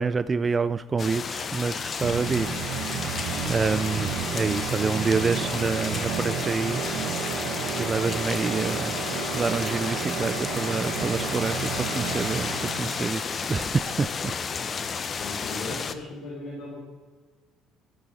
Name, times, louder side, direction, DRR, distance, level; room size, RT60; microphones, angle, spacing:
voice 1, 0.0-2.6 3.5-6.8 7.8-9.1 9.3-14.3, right 4 dB, 25° right, 14 dB, 0.3 m, -27 dB
sound 1, 1.0-15.9, left 5 dB, 35° left, 0.7 m, -32 dB
sound 2, 2.0-13.0, right 8 dB, 80° right, 0.9 m, -32 dB
voice 2, 14.8-16.8, left 2 dB, 60° left, -7 dB, 3.8 m, -38 dB
13.0 x 7.6 x 4.1 m, 1.4 s
supercardioid pair, 95°, 0 cm